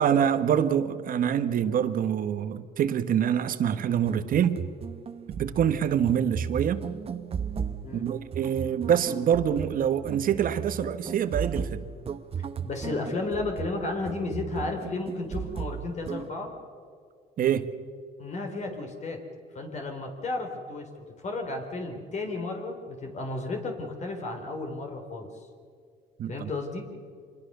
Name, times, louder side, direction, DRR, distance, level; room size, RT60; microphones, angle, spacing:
voice 1, 0.0-4.6 5.4-6.8 7.9-11.8 17.4-17.7 26.2-26.5, right 9 dB, 55° right, 10 dB, 1.4 m, -25 dB
sound 1, 3.9-16.3, right 7 dB, 35° right, 1.1 m, -36 dB
voice 2, 12.6-16.5 18.2-19.2 19.5-20.9 21.2-25.3 26.3-26.9, left 2 dB, 45° left, 3 dB, 3.8 m, -33 dB
26.0 x 21.0 x 6.8 m, 2.2 s
cardioid pair, 110°, 17 cm